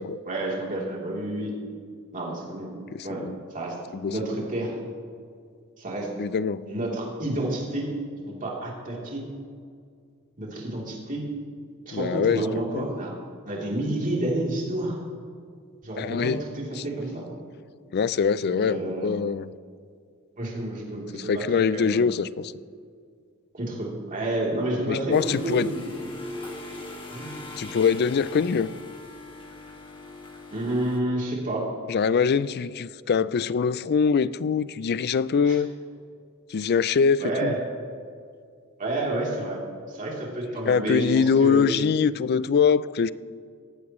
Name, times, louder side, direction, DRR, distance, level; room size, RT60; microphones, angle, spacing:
voice 1, 0.3-1.5 2.1-2.7 3.0-3.2 3.5-3.8 4.0-4.7 5.8-6.1 6.7-9.2 10.4-11.3 11.9-13.1 13.4-15.0 15.8-17.3 18.4-19.1 20.4-22.0 23.5-25.8 27.1-27.3 28.1-28.4 30.5-31.7 35.4-35.6 37.2-37.6 38.8-39.6 39.9-41.8, right 1 dB, 40° right, -3 dB, 3.2 m, -30 dB
voice 2, 2.9-3.3 3.9-4.2 6.2-6.6 11.9-12.5 12.7-12.8 16.0-16.4 17.9-19.5 21.1-22.5 24.9-25.7 27.6-28.7 31.9-35.7 36.5-37.5 40.7-43.1, left 6 dB, 45° left, 17 dB, 0.4 m, -23 dB
sound 1, 25.1-31.0, left 2 dB, 25° left, 1.8 m, -40 dB
18.0 x 14.5 x 3.1 m, 2.2 s
head